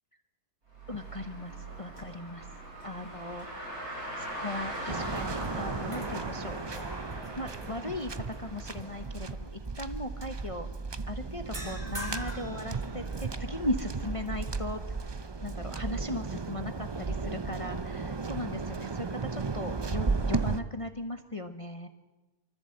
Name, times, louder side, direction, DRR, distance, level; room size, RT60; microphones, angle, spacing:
Car, 0.7-9.3, right 1 dB, 70° right, 6.2 m, -41 dB
voice 1, 0.9-2.5 2.8-3.8 4.2-6.6 7.4-10.7 11.1-14.8 15.4-21.9, left 1 dB, 25° left, 8 dB, 0.9 m, -38 dB
sound 1, 4.2-4.7 5.1-8.4 8.8-9.1 11.5-13.5, equal, 25° right, 4.2 m, -45 dB
Waves surf, 4.9-20.6, right 4 dB, 40° right, 0.3 m, -35 dB
24.0 x 14.0 x 7.9 m, 1.1 s
omnidirectional pair, 1.6 m